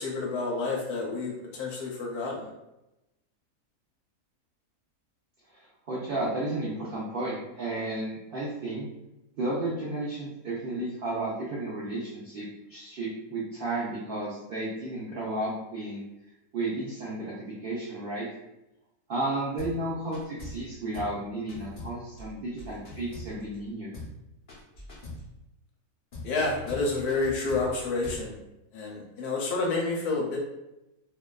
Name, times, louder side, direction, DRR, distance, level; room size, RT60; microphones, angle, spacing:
voice 1, 0.0-2.5 26.2-28.4 28.7-30.4, left 3 dB, 85° left, -2 dB, 1.1 m, -29 dB
voice 2, 5.5-8.9 9.4-16.0 16.5-18.3 19.1-23.9, right 2 dB, 75° right, -6 dB, 0.5 m, -33 dB
sound 1, 19.6-19.8 20.1-20.7 20.9-21.2 21.5-23.6 23.9-24.2 24.5-25.3 26.1-28.3, left 2 dB, 50° left, 0.7 m, -42 dB
2.6 x 2.2 x 2.2 m, 0.93 s
omnidirectional pair, 1.6 m